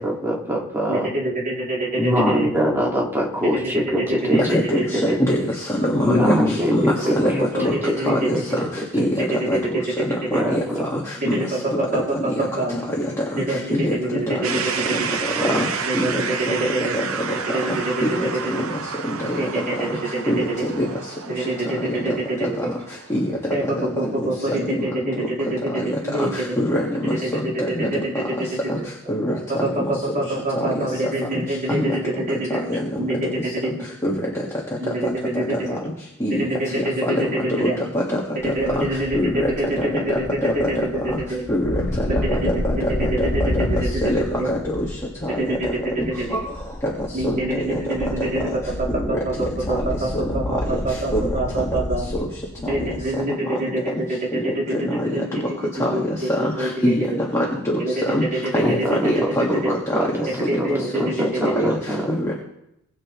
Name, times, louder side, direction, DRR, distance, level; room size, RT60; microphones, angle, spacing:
voice 1, 0.0-1.1 2.0-5.2 6.0-7.2 7.9-8.4 9.0-9.1 10.3-10.9 15.4-15.6 58.6-58.7 59.0-59.1 59.9-60.1 60.6-60.7 61.2-62.0, equal, 10° right, -2 dB, 2.1 m, -23 dB
voice 2, 0.9-2.5 3.4-5.2 6.6-6.7 7.0-8.6 9.2-10.4 11.2-12.8 13.3-15.2 15.8-17.0 17.3-18.4 19.3-20.7 21.2-22.7 23.5-26.6 27.2-28.9 29.5-32.6 33.0-33.7 34.8-35.7 36.3-37.8 38.4-41.4 42.1-44.5 45.2-46.3 47.1-48.5 48.8-52.1 52.6-57.2 57.8-59.7 60.3-61.7, right 1 dB, 40° right, -4 dB, 3.0 m, -26 dB
voice 3, 4.3-7.8 8.1-8.7 8.9-9.8 10.3-11.4 11.9-12.3 13.3-13.9 14.3-14.6 15.4-15.7 15.9-16.2 16.9-17.0 17.7-18.7 19.1-19.2 20.3-20.4 20.8-20.9 21.8-22.5 23.1-23.5 24.0-24.1 24.5-24.8 25.2-25.3 25.7-25.9 26.3-27.1 27.6-27.9 28.2-28.3 28.7-28.8 29.1-29.4 30.6-30.9 31.7-32.0 32.7-33.0 34.0-34.1 36.2-36.5 37.1-37.2 37.6-37.7 37.9-38.0 38.4-38.9 39.1-39.5 39.9-40.0 40.4-40.7 41.1-41.2 41.5-41.8 42.1-44.9 45.2-45.6 46.0-46.4 47.2-47.4 47.7-47.8 48.9-49.2 50.1-50.2 51.1-51.3 53.5-53.6 53.9-54.0 54.3-54.4 54.7-54.8 56.4-57.8 58.1-58.3 58.5-58.8 59.0-59.6 60.5-60.6 61.6-61.7 62.1-62.3, equal, 15° left, -4 dB, 1.8 m, -24 dB
sound 1, 14.4-24.3, right 6 dB, 85° right, 0.7 m, -31 dB
sound 2, 38.4-53.1, left 1 dB, 50° left, 1.5 m, -30 dB
20.0 x 7.5 x 3.2 m, 0.81 s
head